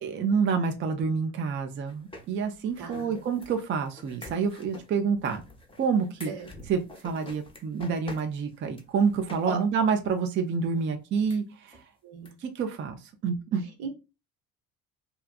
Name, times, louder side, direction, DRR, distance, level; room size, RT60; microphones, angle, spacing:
voice 1, 0.0-5.4 5.8-6.3 6.7-11.8 12.4-13.6, right 5 dB, 30° right, 0.4 m, -28 dB
sound 1, 1.9-9.6 9.8-9.9 10.3-10.4 10.8-10.9 11.3-11.4 11.7-11.8 12.3-12.4 12.6-12.7, left 1 dB, 15° left, 0.6 m, -48 dB
voice 2, 2.8-3.1 6.3-6.5 9.5-9.6 12.0-12.3 13.8-13.9, right 5 dB, 60° right, 0.9 m, -36 dB
2.6 x 2.3 x 2.2 m
hypercardioid pair, 60°, 43 cm